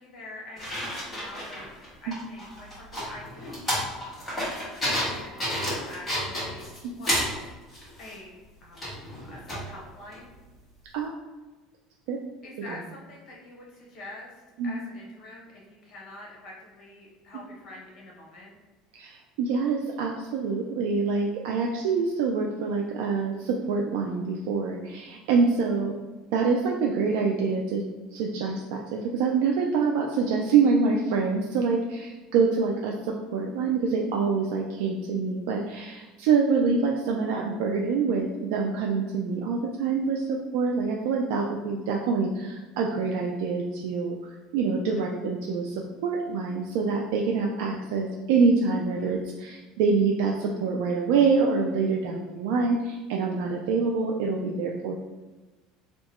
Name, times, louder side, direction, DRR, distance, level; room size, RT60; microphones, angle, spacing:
voice 1, 0.0-4.0 4.8-6.6 6.9-7.4 8.0-8.9 9.3-10.3 12.4-18.6 45.0-45.1 49.0-49.2, left 1 dB, 45° left, -2 dB, 1.0 m, -45 dB
sound 1, 0.6-7.4 7.7-8.1 8.8-9.7 10.1-10.2, equal, 15° left, 1.4 m, -31 dB
voice 2, 18.9-25.9 26.3-27.8 28.1-44.2 44.5-54.9, right 4 dB, 80° right, 0 dB, 0.3 m, -26 dB
2.8 x 2.2 x 4.1 m, 1.2 s
cardioid pair, 140°, 0 cm